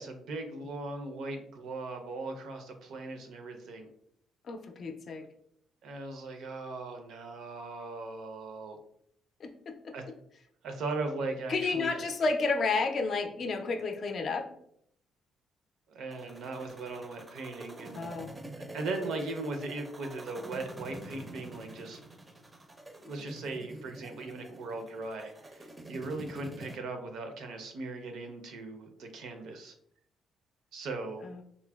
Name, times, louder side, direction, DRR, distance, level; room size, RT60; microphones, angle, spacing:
voice 1, 0.0-3.9 5.8-8.8 9.9-10.0 10.6-12.1 15.9-18.1 18.7-22.0 23.0-29.7 30.7-31.3, right 3 dB, 80° right, 5 dB, 0.5 m, -38 dB
voice 2, 4.5-5.3 9.4-9.9 11.5-14.5 17.9-18.4 31.2-31.4, left 4 dB, 55° left, 5 dB, 0.4 m, -31 dB
sound 1, 16.1-26.8, right 1 dB, 20° right, 0.4 m, -47 dB
3.7 x 2.0 x 2.2 m, 0.71 s
cardioid pair, 90°, 0 cm